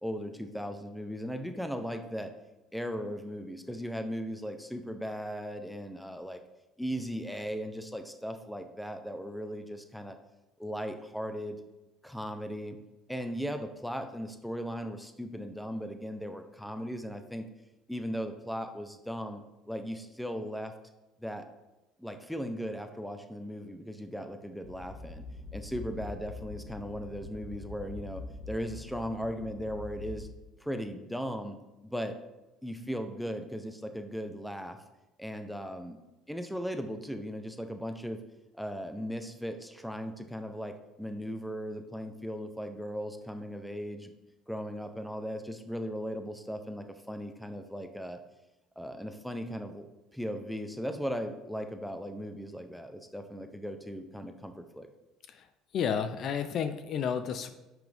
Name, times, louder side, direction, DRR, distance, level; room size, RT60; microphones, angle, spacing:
voice 1, 0.0-2.3 2.7-6.4 6.8-10.2 10.6-11.6 12.0-12.8 13.1-17.5 17.9-19.4 19.7-20.7 21.2-21.5 22.0-25.2 25.5-30.3 30.6-31.6 31.8-32.1 32.6-34.8 35.2-36.0 36.3-38.2 38.6-44.1 44.5-48.2 48.8-49.8 50.1-54.9, equal, ahead, 7 dB, 0.9 m, -37 dB
sound 1, 24.6-30.3, left 3 dB, 70° left, 1.6 m, -44 dB
voice 2, 55.7-57.5, left 7 dB, 50° left, 9 dB, 0.6 m, -31 dB
10.5 x 6.1 x 3.6 m, 0.99 s
cardioid pair, 110°, 0 cm